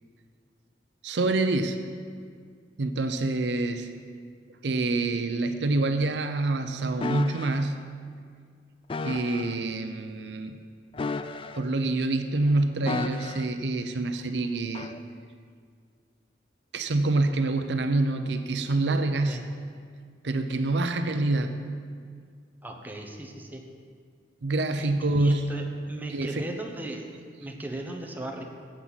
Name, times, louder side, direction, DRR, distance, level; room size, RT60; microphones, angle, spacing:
voice 1, 1.0-1.8 2.8-3.9 4.6-7.8 9.0-10.6 11.5-14.9 16.7-19.4 20.2-21.6 24.4-25.5 26.1-26.4, right 2 dB, 70° right, 7 dB, 0.6 m, -26 dB
sound 1, 7.0-7.6 8.9-9.6 10.9-11.8 12.9-13.6 14.7-15.0, left 3 dB, 30° left, 0.4 m, -34 dB
voice 2, 22.6-23.6 24.8-27.1 27.4-28.4, right 1 dB, 10° right, 1 dB, 0.9 m, -37 dB
16.0 x 7.6 x 4.1 m, 2.1 s
head